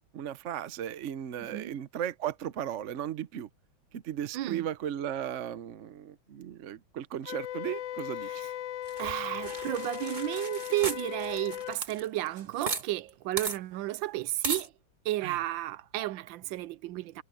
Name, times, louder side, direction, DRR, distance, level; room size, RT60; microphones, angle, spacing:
voice 1, 0.1-3.5 3.9-8.3 15.2-15.4, right 10 dB, 55° right, 0.8 m, -36 dB
voice 2, 1.4-1.8 4.3-4.7 8.3-8.4 9.0-14.7 15.0-17.2, right 15 dB, 90° right, 1.4 m, -33 dB
Wind instrument woodwind instrument, 7.2-11.8, left 12 dB, 80° left, 1.3 m, -38 dB
sound 1, 8.9-12.8 13.1-13.2 13.4-13.6 14.4-14.7, right 4 dB, 30° right, 1.2 m, -36 dB
omnidirectional pair, 2.0 m